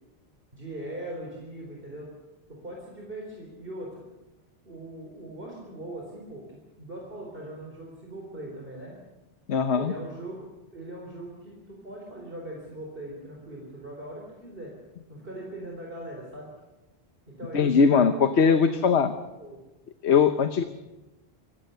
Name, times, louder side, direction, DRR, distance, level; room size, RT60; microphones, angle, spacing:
voice 1, 0.5-2.1 2.5-4.0 4.7-9.0 9.8-10.5 10.7-14.7 15.1-16.5 17.3-18.3 18.7-19.6 20.4-20.6, right 1 dB, 55° right, -1 dB, 4.3 m, -40 dB
voice 2, 9.5-9.9 17.5-19.1 20.0-20.6, left 6 dB, 85° left, 9 dB, 1.2 m, -20 dB
25.5 x 16.5 x 6.8 m, 1.0 s
omnidirectional pair, 1.1 m